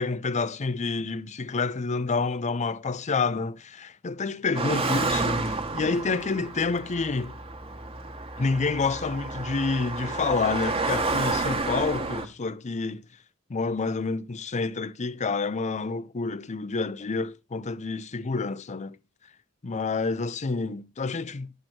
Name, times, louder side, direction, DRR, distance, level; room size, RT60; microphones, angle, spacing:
voice 1, 0.0-7.3 8.4-13.0 13.5-19.0 19.6-21.5, left 4 dB, 30° left, 0.5 m, -28 dB
Car passing by, 4.5-12.3, right 3 dB, 25° right, 1.4 m, -30 dB
11.0 x 4.4 x 7.7 m
head